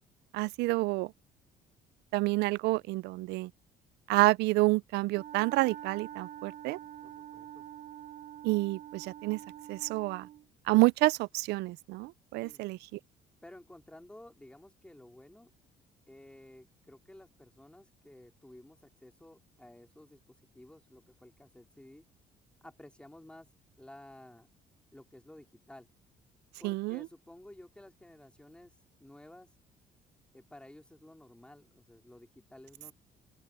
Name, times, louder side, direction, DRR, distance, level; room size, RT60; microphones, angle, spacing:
voice 1, 0.3-1.1 2.1-3.5 4.1-6.8 8.4-9.4 9.7-10.3 10.7-13.0 26.6-27.1, right 21 dB, 85° right, 0.4 m, -28 dB
Wind instrument woodwind instrument, 5.1-10.5, right 11 dB, 55° right, 2.9 m, -46 dB
voice 2, 7.0-7.6 12.4-12.6 13.4-15.5 16.1-22.0 22.6-23.5 23.8-24.5 24.9-25.9 26.6-28.7 29.0-29.5 30.3-32.9, left 1 dB, 5° left, 2.9 m, -53 dB
open air
cardioid pair, 110°, 17 cm